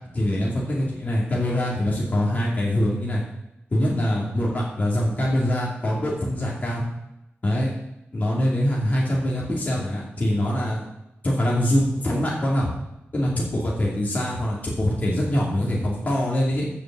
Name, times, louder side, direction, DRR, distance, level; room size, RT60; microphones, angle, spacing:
voice 1, 0.1-3.2 3.7-6.8 7.4-7.7 8.1-10.8 11.2-12.7 13.1-16.7, left 1 dB, 35° left, -5 dB, 2.4 m, -23 dB
9.0 x 7.2 x 7.3 m, 0.88 s
wide cardioid pair, 150°, 4 cm